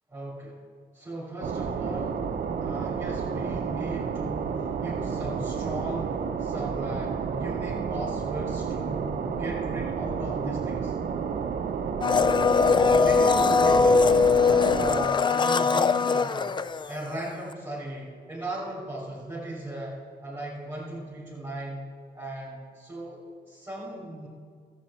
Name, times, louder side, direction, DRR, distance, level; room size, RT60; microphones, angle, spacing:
voice 1, 0.1-0.6 0.9-2.3 2.6-10.9 12.9-16.5 16.9-19.9 20.2-21.9 22.1-24.3, right 1 dB, 15° right, -8 dB, 3.3 m, -37 dB
sound 1, 1.4-15.1, right 6 dB, 60° right, 0.7 m, -31 dB
Domestic sounds home sounds, 12.0-17.3 17.5-17.6, left 5 dB, 30° left, 0.4 m, -21 dB
12.5 x 8.3 x 4.4 m, 2.1 s
cardioid pair, 75°, 17 cm